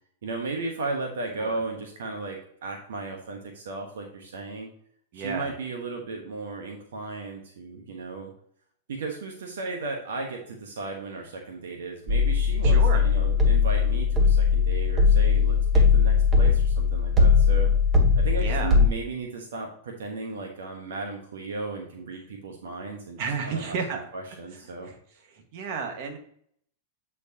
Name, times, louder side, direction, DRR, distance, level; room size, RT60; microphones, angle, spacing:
voice 1, 0.2-4.7 5.1-8.3 8.9-17.7 18.2-23.2 23.4-24.9, right 3 dB, 80° right, 1 dB, 1.1 m, -35 dB
voice 2, 5.1-5.5 12.6-13.0 18.4-18.8 23.2-24.1 24.8-24.9 25.3-26.2, right 5 dB, 55° right, 4 dB, 1.5 m, -32 dB
sound 1, 12.1-18.9, left 5 dB, 25° right, 1.2 m, -20 dB
8.3 x 4.5 x 2.8 m, 0.64 s
hypercardioid pair, 115°, 0 cm